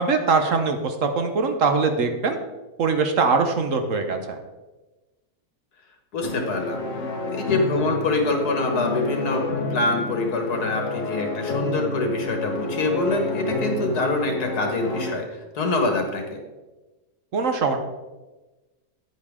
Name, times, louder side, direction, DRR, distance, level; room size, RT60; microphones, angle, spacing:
voice 1, 0.0-2.4 2.8-4.4 17.3-17.8, right 4 dB, 60° right, 6 dB, 1.2 m, -22 dB
voice 2, 6.1-6.8 7.3-15.3 15.6-16.4, left 2 dB, 80° left, 4 dB, 2.1 m, -25 dB
sound 1, 6.2-15.1, left 2 dB, 55° left, 1.3 m, -29 dB
9.5 x 9.4 x 3.7 m, 1.1 s
omnidirectional pair, 1.7 m